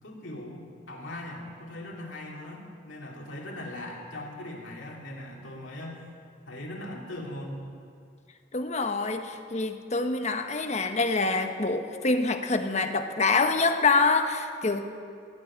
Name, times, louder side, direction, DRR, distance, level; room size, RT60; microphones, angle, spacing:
voice 1, 0.0-6.1 6.5-7.7, left 1 dB, 90° left, -2 dB, 2.8 m, -40 dB
voice 2, 8.5-14.8, left 3 dB, 35° left, 7 dB, 0.9 m, -26 dB
16.0 x 7.6 x 9.7 m, 2.3 s
head